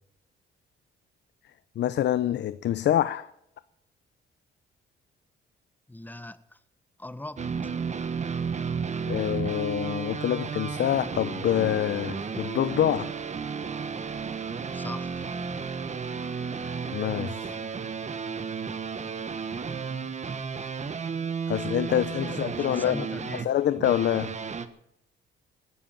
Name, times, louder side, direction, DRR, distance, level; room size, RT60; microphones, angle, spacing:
voice 1, 1.8-3.3 9.1-13.1 16.9-17.6 21.5-23.0 23.4-24.3, left 11 dB, 60° left, 0.7 m, -26 dB
voice 2, 5.9-6.6 7.0-7.4 14.6-15.3 22.2-23.5, left 1 dB, 10° left, 1.0 m, -40 dB
sound 1, 7.4-24.7, right 5 dB, 35° right, 1.3 m, -33 dB
17.0 x 10.5 x 7.4 m
cardioid pair, 90°, 20 cm